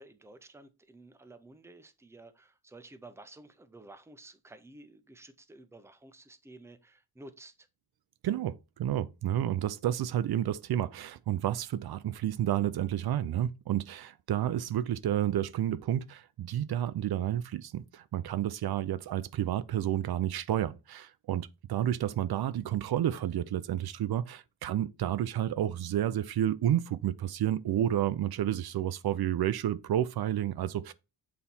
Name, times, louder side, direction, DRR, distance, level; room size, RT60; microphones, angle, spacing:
voice 1, 0.0-7.7, right 2 dB, 5° right, 0.6 m, -52 dB
voice 2, 8.2-30.9, right 11 dB, 75° right, 0.5 m, -30 dB
7.6 x 4.2 x 4.1 m
wide cardioid pair, 170°, 37 cm